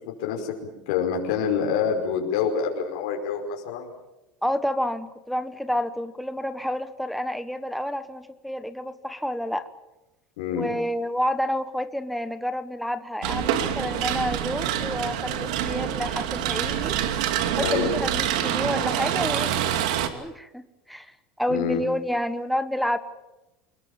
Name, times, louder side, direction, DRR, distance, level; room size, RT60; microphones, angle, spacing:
voice 1, 0.2-0.6 0.9-3.9 10.4-10.7 17.6-17.9 21.5-21.8, left 7 dB, 80° left, 1 dB, 5.3 m, -26 dB
voice 2, 4.4-9.7 10.5-16.9 17.4-21.1 21.4-23.0, equal, ahead, 10 dB, 1.1 m, -29 dB
sound 1, 13.2-20.1, right 10 dB, 85° right, 2.6 m, -26 dB
26.5 x 21.5 x 7.4 m, 0.99 s
cardioid pair, 160°, 4 cm